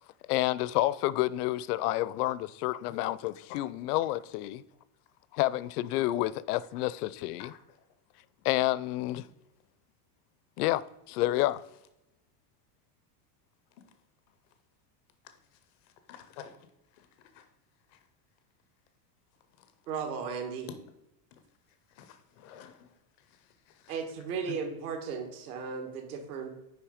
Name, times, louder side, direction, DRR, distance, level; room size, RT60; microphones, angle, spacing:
voice 1, 0.3-4.6 5.3-7.5 8.4-9.3 10.6-11.6, left 16 dB, 75° left, 0.5 m, -29 dB
voice 2, 16.1-16.6 17.0-17.1 17.3-17.5 17.9-18.0 20.7-20.8 21.3-21.4 22.0-22.9 23.7-23.9, left 9 dB, 25° left, 0.4 m, -48 dB
voice 3, 19.9-20.7 23.9-26.6, right 6 dB, 65° right, 1.6 m, -35 dB
9.6 x 3.3 x 4.9 m
supercardioid pair, 175°, 46 cm